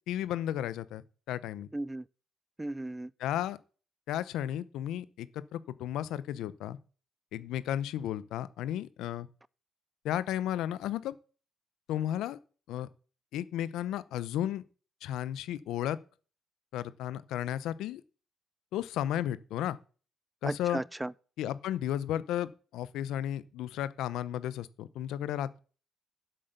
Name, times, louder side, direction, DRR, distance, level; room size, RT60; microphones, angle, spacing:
voice 1, 0.1-1.7 3.2-3.6 4.1-6.8 7.3-9.3 10.0-11.2 11.9-12.4 12.7-12.9 13.3-14.6 15.0-16.0 16.7-18.0 18.7-19.8 20.4-20.8 21.4-25.6, left 11 dB, 85° left, 0.7 m, -34 dB
voice 2, 1.7-2.0 2.6-3.1 20.4-21.1, right 1 dB, 10° right, 0.4 m, -35 dB
7.9 x 7.7 x 6.7 m
cardioid pair, 90°, 0 cm